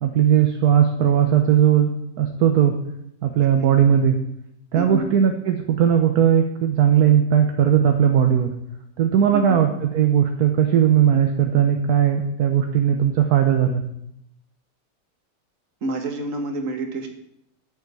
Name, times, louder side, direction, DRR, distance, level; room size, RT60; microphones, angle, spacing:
voice 1, 0.0-1.9 2.2-2.7 3.2-4.1 4.7-8.5 9.0-13.8, right 9 dB, 65° right, 5 dB, 1.4 m, -18 dB
voice 2, 4.7-5.1 9.3-9.6 15.8-17.1, right 2 dB, 50° right, 5 dB, 1.8 m, -28 dB
8.8 x 7.3 x 8.3 m, 0.78 s
omnidirectional pair, 1.9 m